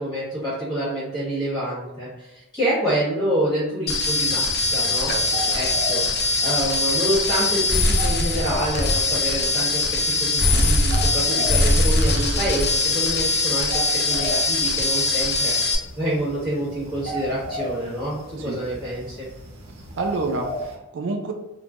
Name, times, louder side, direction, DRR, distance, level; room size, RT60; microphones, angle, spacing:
voice 1, 0.0-5.1 5.5-6.0 6.4-9.9 10.2-18.2 18.4-19.2, right 1 dB, 5° left, -12 dB, 1.3 m, -27 dB
sound 1, 3.9-15.7, left 2 dB, 45° left, 0.5 m, -21 dB
sound 2, 4.2-20.8, equal, 80° right, 0.7 m, -36 dB
voice 2, 5.1-5.6 11.3-11.5 18.4-18.6 20.0-21.3, right 3 dB, 55° right, 4 dB, 0.3 m, -29 dB
3.0 x 2.2 x 2.5 m, 0.96 s
head